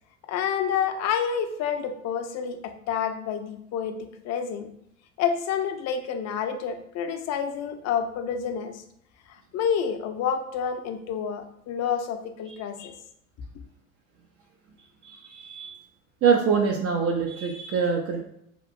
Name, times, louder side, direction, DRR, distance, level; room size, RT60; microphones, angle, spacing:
voice 1, 0.3-4.0 4.2-4.7 5.2-8.8 9.3-12.9, left 7 dB, 45° left, 6 dB, 0.5 m, -28 dB
voice 2, 15.0-15.7 16.2-18.2, right 6 dB, 40° right, 2 dB, 0.5 m, -24 dB
2.9 x 2.5 x 2.4 m, 0.75 s
hypercardioid pair, 80°, 39 cm